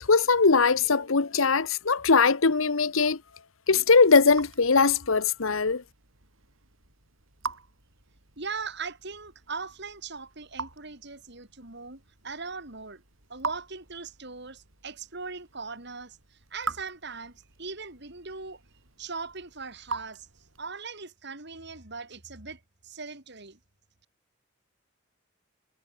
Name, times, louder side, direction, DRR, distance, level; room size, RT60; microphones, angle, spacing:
voice 1, 0.1-3.2 3.7-5.8, left 4 dB, 85° left, 1.1 m, -21 dB
Raindrop / Drip, 3.6-20.8, right 4 dB, 85° right, 5.5 m, -43 dB
voice 2, 8.4-13.0 13.3-18.6 19.0-20.3 20.6-23.6, right 4 dB, 55° right, 4.1 m, -40 dB
head